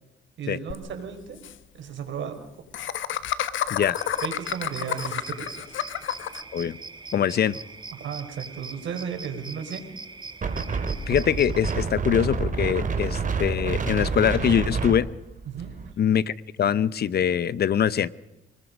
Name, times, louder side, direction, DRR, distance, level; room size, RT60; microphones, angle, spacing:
voice 1, 0.4-1.4 1.7-2.4 4.2-5.6 7.9-9.9 15.5-15.8, right 7 dB, 70° right, 5 dB, 4.9 m, -34 dB
Laughter, 0.7-0.8 1.1-1.2 1.4-1.5 2.7-6.4, left 11 dB, 75° left, 1.4 m, -30 dB
sound 1, 4.0-11.8, right 3 dB, 20° right, 1.9 m, -42 dB
voice 2, 7.1-7.6 11.1-15.1 16.0-16.3 16.6-18.1, left 9 dB, 55° left, 18 dB, 0.8 m, -23 dB
Wind, 10.4-15.9, right 4 dB, 40° right, 3.1 m, -28 dB
30.0 x 20.5 x 5.3 m, 0.97 s
cardioid pair, 90°, 20 cm